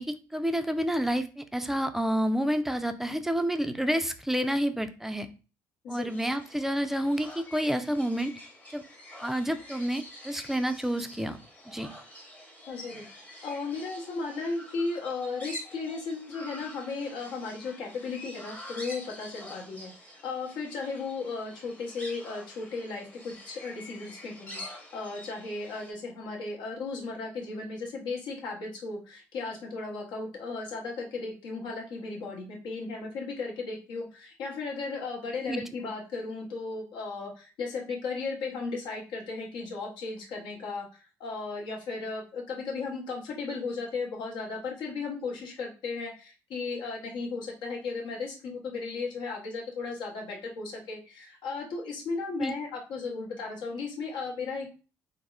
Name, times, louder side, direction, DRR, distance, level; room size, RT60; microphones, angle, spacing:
voice 1, 0.0-5.3 5.9-8.3 8.7-8.8 9.2-11.4 11.7-11.9 35.5-35.6 52.4-52.5, equal, 5° right, 9 dB, 0.4 m, -29 dB
sound 1, 6.1-25.9, left 1 dB, 15° left, 0.9 m, -47 dB
voice 2, 12.7-40.9 41.2-54.7, left 4 dB, 70° left, -1 dB, 0.9 m, -35 dB
3.5 x 2.0 x 2.3 m, 0.34 s
supercardioid pair, 70°, 8 cm